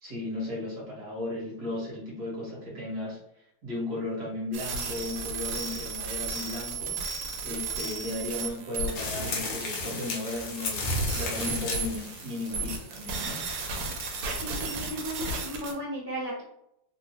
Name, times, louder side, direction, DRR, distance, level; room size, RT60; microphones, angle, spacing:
voice 1, 0.0-3.2 3.6-7.0 7.4-13.4, left 2 dB, 50° right, -5 dB, 1.4 m, -35 dB
sound 1, 4.5-15.7, right 3 dB, 80° right, 1.4 m, -35 dB
sound 2, 8.9-14.3, left 2 dB, 70° left, 1.3 m, -34 dB
voice 2, 14.4-16.4, equal, 85° left, -10 dB, 0.4 m, -35 dB
3.5 x 2.2 x 2.8 m, 0.78 s
omnidirectional pair, 2.4 m